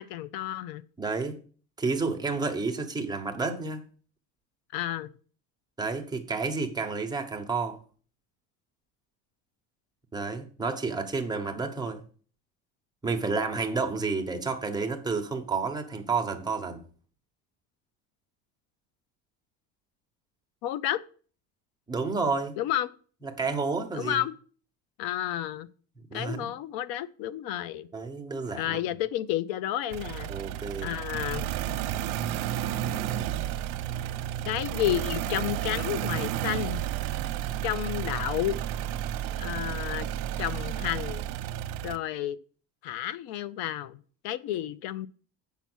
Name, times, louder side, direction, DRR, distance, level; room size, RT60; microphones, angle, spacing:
voice 1, 0.0-0.8 4.7-5.1 20.6-21.0 22.6-22.9 23.9-24.3 25.0-25.7 26.1-27.9 28.6-30.3 30.8-31.5 34.5-36.8 37.6-38.6 39.4-40.1 40.4-41.2 41.8-42.4 42.8-44.0 44.2-45.1, left 12 dB, 80° left, 0.6 m, -31 dB
voice 2, 1.0-1.4 1.8-3.8 5.8-7.8 10.1-12.0 13.0-16.8 21.9-22.6 23.2-24.2 26.1-26.5 27.9-28.8 30.3-30.9, right 4 dB, 10° right, 1.0 m, -30 dB
sound 1, 29.9-42.0, right 11 dB, 80° right, 0.8 m, -32 dB
8.2 x 5.7 x 6.1 m
cardioid pair, 160°, 36 cm